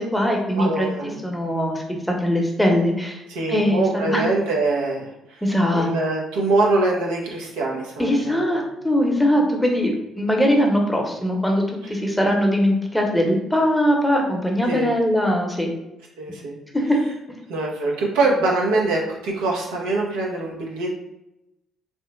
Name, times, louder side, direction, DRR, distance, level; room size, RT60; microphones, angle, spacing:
voice 1, 0.0-0.9 1.2-3.2 3.5-4.2 5.4-5.9 8.0-11.6 11.9-15.7 16.7-17.0, equal, 5° left, 0 dB, 0.8 m, -21 dB
voice 2, 0.5-1.2 3.3-5.4 5.7-8.6 14.7-14.9 16.2-16.6 17.5-21.0, right 2 dB, 80° right, -3 dB, 0.7 m, -23 dB
3.1 x 2.0 x 3.2 m, 0.88 s
hypercardioid pair, 55°, 0 cm